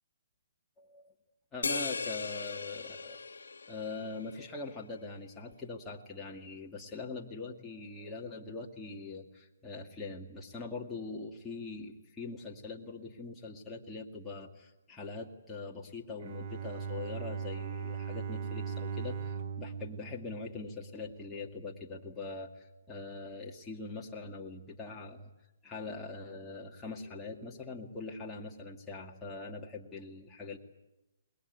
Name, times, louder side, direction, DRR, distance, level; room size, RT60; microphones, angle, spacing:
voice 1, 0.8-1.1 1.5-3.3 3.7-25.3 25.6-30.6, left 3 dB, 10° left, -2 dB, 2.3 m, -42 dB
sound 1, 1.6-4.3, left 4 dB, 85° left, 1.3 m, -37 dB
Bowed string instrument, 16.2-21.2, right 6 dB, 40° right, 2.5 m, -39 dB
27.5 x 21.5 x 8.3 m, 0.96 s
hypercardioid pair, 145°, 0 cm